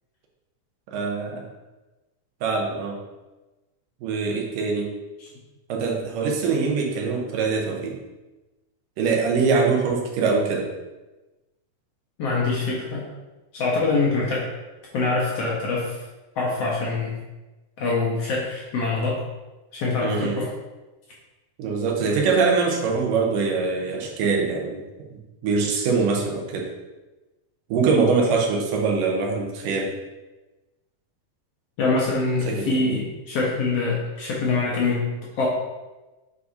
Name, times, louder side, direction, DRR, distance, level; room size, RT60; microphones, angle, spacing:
voice 1, 0.9-1.4 2.4-3.0 4.0-4.9 5.7-8.0 9.0-10.7 20.0-20.4 21.6-24.8 25.1-26.7 27.7-29.9 32.5-32.9, right 4 dB, 90° right, 0 dB, 2.6 m, -23 dB
voice 2, 12.2-13.1 13.5-14.5 14.9-16.0 16.4-17.1 17.8-19.2 19.7-20.5 31.8-35.1 35.4-35.5, left 3 dB, 65° left, -4 dB, 1.6 m, -24 dB
7.9 x 4.8 x 2.7 m, 1.1 s
omnidirectional pair, 3.7 m